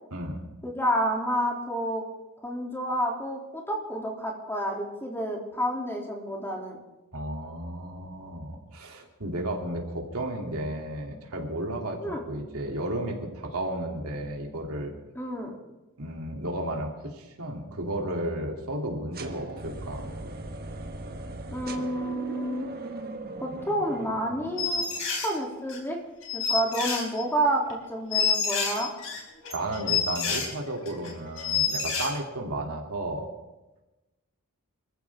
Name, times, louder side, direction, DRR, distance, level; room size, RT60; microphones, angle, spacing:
voice 1, 0.6-2.0 2.4-6.8 12.0-12.2 15.1-15.6 21.5-22.7 23.4-24.9 25.2-26.0 26.3-28.9, right 1 dB, 10° left, -1 dB, 3.0 m, -29 dB
voice 2, 7.1-14.9 16.0-20.1 29.5-33.3, right 1 dB, 70° right, 1 dB, 3.0 m, -33 dB
sound 1, 19.1-25.1, right 2 dB, 45° right, 1.4 m, -39 dB
sound 2, 24.6-25.3 25.7-25.8 26.2-27.4 27.7-27.8 28.1-30.5 30.9-31.1 31.4-32.1, left 6 dB, 65° left, 4.7 m, -28 dB
26.0 x 15.0 x 3.7 m, 1.1 s
head